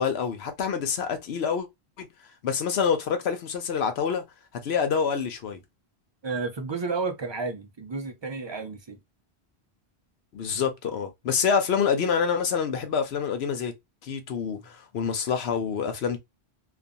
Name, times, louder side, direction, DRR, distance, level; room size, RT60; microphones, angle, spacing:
voice 1, 0.0-1.7 2.0-2.1 2.4-4.2 4.6-5.6 10.3-13.7 14.0-16.2, left 6 dB, 75° left, 0.9 m, -26 dB
voice 2, 6.2-9.0, right 4 dB, 40° right, 0.4 m, -31 dB
2.4 x 2.4 x 2.4 m
omnidirectional pair, 1.1 m